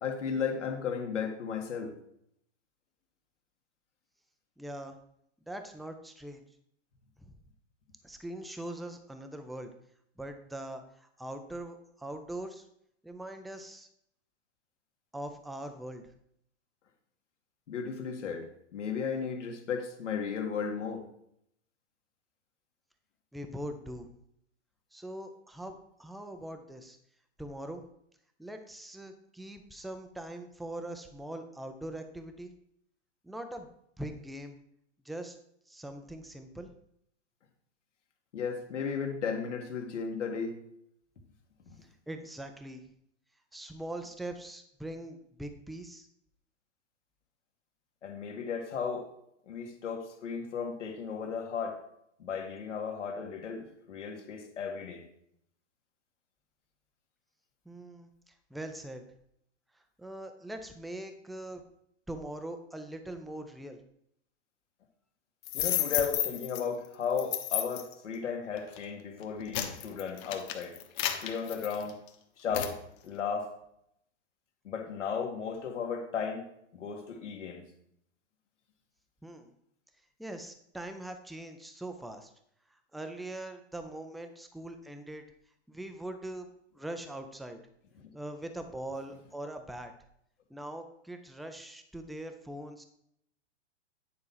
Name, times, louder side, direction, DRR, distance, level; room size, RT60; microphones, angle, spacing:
voice 1, 0.0-1.9 17.7-18.5 18.7-21.1 38.3-40.6 41.7-41.8 48.0-49.1 49.5-51.8 52.2-55.0 65.5-70.8 71.2-72.0 72.4-72.8 73.0-73.5 74.6-76.5 76.7-77.7 88.0-88.1, left 6 dB, 85° left, 3 dB, 2.0 m, -35 dB
voice 2, 4.6-5.0 5.5-6.4 7.2-7.3 8.0-9.7 10.2-12.7 13.0-13.9 15.1-16.0 23.3-24.1 24.9-27.0 27.4-27.8 28.4-32.5 33.2-33.7 34.0-34.6 35.0-35.4 35.7-36.7 42.1-42.8 43.5-46.1 57.7-59.1 60.0-61.6 62.1-63.8 79.2-79.5 80.2-82.3 82.9-85.2 85.7-86.5 86.8-87.6 88.1-89.9 90.5-92.8, right 1 dB, ahead, 7 dB, 0.3 m, -42 dB
sound 1, 65.4-66.6 67.2-67.9 68.6-68.8 69.2-72.1 72.5-72.8, left 12 dB, 45° left, 1.3 m, -32 dB
9.6 x 4.5 x 5.5 m, 0.72 s
hypercardioid pair, 125°, 35 cm